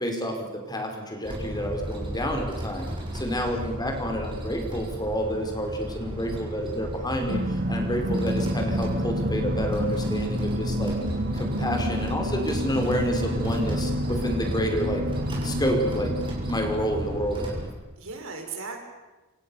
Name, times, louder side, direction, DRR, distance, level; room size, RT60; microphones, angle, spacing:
voice 1, 0.0-2.9 3.1-7.4 7.7-10.9 11.3-15.0 15.4-16.1 16.5-17.7, equal, 20° left, 4 dB, 4.8 m, -29 dB
sound 1, 1.2-17.7, equal, 25° right, 6.8 m, -34 dB
sound 2, 7.3-17.2, equal, 45° right, 3.0 m, -29 dB
voice 2, 13.0-13.4 18.0-18.8, right 4 dB, 65° right, 3 dB, 6.4 m, -38 dB
28.0 x 27.0 x 7.1 m, 1.1 s
head